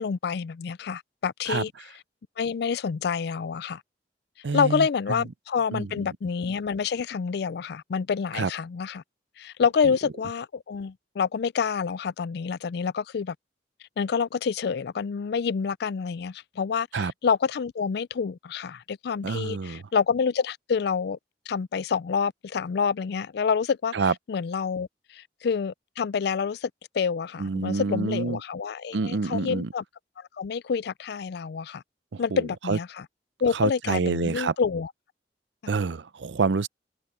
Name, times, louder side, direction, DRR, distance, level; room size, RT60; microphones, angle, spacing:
voice 1, 0.0-1.7 2.4-3.8 4.5-9.0 9.4-13.4 14.0-21.2 21.5-23.9 24.3-29.8 30.2-31.8 32.2-33.0 33.4-34.9, left 6 dB, 65° left, 0.4 m, -28 dB
voice 2, 4.4-4.9 5.7-6.0 8.4-8.5 16.9-17.1 19.2-19.8 23.9-24.1 27.4-28.4 28.9-29.7 32.1-32.4 32.7-32.8 33.5-34.5 35.7-36.7, right 4 dB, 85° right, 0.6 m, -27 dB
head